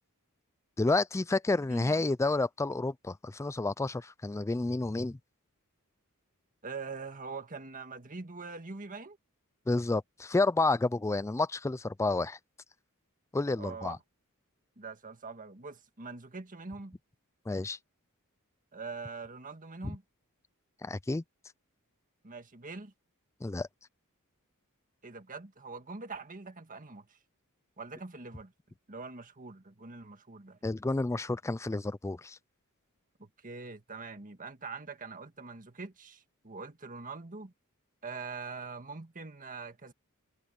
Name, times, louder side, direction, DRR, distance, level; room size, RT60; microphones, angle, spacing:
voice 1, 0.8-5.2 9.7-12.4 13.3-14.0 17.5-17.8 19.8-20.0 20.8-21.2 23.4-23.7 30.6-32.4, left 2 dB, 15° left, 0.3 m, -30 dB
voice 2, 1.5-2.0 6.6-9.2 13.6-14.0 14.8-17.0 18.7-20.0 22.2-22.9 25.0-27.2 27.8-28.5 28.9-30.6 33.2-37.5 38.0-39.9, right 4 dB, 40° right, 1.8 m, -43 dB
head